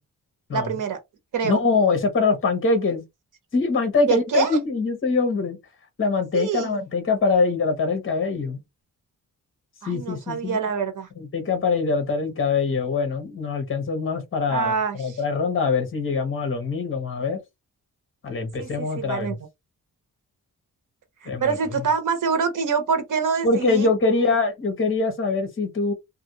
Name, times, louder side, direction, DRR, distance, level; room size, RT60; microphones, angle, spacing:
voice 1, 0.5-1.0 1.3-1.6 4.1-4.6 6.3-6.8 9.8-11.1 14.5-15.2 18.6-19.3 21.2-23.9, right 6 dB, 65° right, 1.0 m, -25 dB
voice 2, 1.4-3.0 3.5-5.6 6.0-8.6 9.9-10.6 11.2-17.4 18.2-19.3 21.2-21.5 23.4-25.9, left 4 dB, 35° left, 1.1 m, -23 dB
2.6 x 2.6 x 2.8 m
wide cardioid pair, 145°, 34 cm